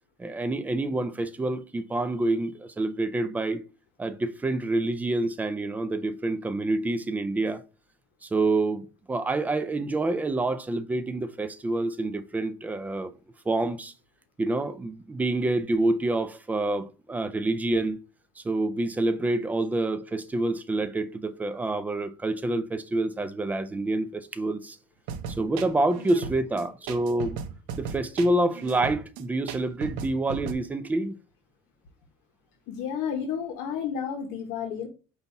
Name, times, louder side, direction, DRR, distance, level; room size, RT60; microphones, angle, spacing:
voice 1, 0.2-3.6 4.0-7.6 8.2-13.1 13.5-13.9 14.4-18.0 18.4-24.8 25.3-27.4 27.8-31.2, right 2 dB, 10° right, 0.3 m, -27 dB
sound 1, 25.1-30.5, right 6 dB, 85° right, 0.6 m, -36 dB
voice 2, 32.7-34.9, left 7 dB, 75° left, 0.9 m, -31 dB
5.3 x 2.3 x 4.1 m
cardioid pair, 145°, 16 cm